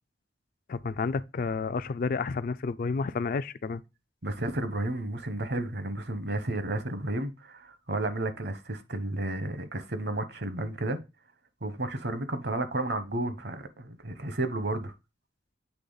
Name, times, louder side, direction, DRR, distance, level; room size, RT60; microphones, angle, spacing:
voice 1, 0.7-3.8, left 4 dB, 50° left, 0.3 m, -30 dB
voice 2, 4.2-11.0 11.6-14.9, right 2 dB, 60° right, 0.9 m, -32 dB
8.3 x 3.3 x 3.9 m
head